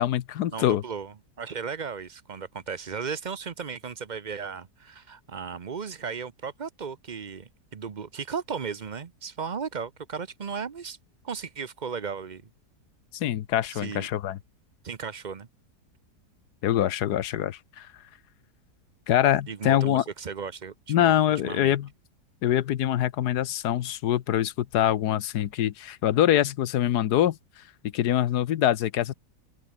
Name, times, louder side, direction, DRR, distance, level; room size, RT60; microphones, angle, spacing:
voice 1, 0.0-0.8 13.1-14.4 16.6-17.9 19.1-20.0 20.9-21.9 22.4-27.4 27.9-29.1, left 11 dB, 80° left, 1.4 m, -24 dB
voice 2, 0.5-11.0 11.2-12.4 13.7-14.1 14.8-15.5 19.5-21.2 21.4-21.7, right 6 dB, 40° right, 0.7 m, -35 dB
open air
omnidirectional pair, 1.7 m